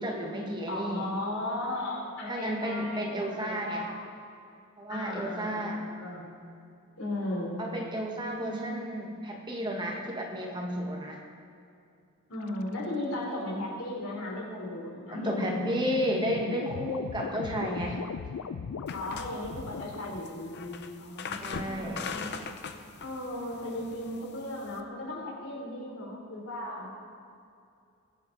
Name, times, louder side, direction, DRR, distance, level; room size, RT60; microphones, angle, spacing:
voice 1, 0.0-1.1 2.3-3.9 4.8-5.8 7.6-11.2 15.1-18.0 21.4-22.0, equal, 20° right, 1 dB, 1.3 m, -32 dB
voice 2, 0.7-4.0 4.9-6.3 7.0-7.6 8.4-8.8 12.3-15.7 17.3-17.8 18.9-22.6 23.0-26.9, left 1 dB, 70° left, -3 dB, 3.4 m, -36 dB
sound 1, 12.4-12.8 15.1-20.2, left 5 dB, 90° left, 0.4 m, -38 dB
sound 2, 18.9-24.8, left 5 dB, 50° left, 0.7 m, -41 dB
20.0 x 7.8 x 3.9 m, 2.5 s
head